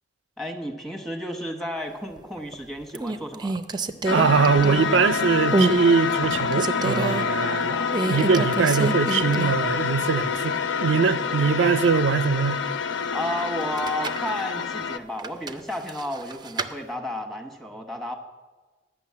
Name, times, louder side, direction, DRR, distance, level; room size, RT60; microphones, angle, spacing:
voice 1, 0.4-3.6 7.4-7.9 13.1-18.2, equal, ahead, 1.1 m, -32 dB
sound 1, 2.2-2.5 2.9-5.1 5.5-5.8 6.2-7.2 7.9-9.7 10.0-10.1 13.6-14.3 15.2-16.7, right 3 dB, 25° right, 0.5 m, -27 dB
sound 2, 4.1-15.0, left 6 dB, 80° left, 0.5 m, -27 dB
voice 2, 4.1-7.8 8.1-12.6, right 5 dB, 90° right, 0.4 m, -22 dB
11.5 x 6.2 x 8.5 m
head